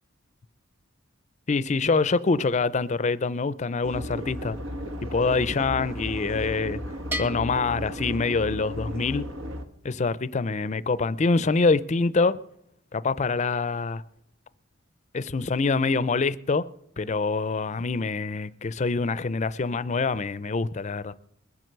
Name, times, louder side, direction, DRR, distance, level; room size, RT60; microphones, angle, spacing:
voice 1, 1.5-4.6 5.1-6.8 7.2-9.3 9.8-12.4 12.9-14.0 15.1-16.7 17.0-21.1, left 4 dB, 35° left, 0.5 m, -25 dB
sound 1, 3.8-9.6, equal, 85° right, 1.5 m, -34 dB
Bell, 7.1-8.8, equal, 10° right, 0.8 m, -37 dB
21.0 x 7.7 x 6.7 m
head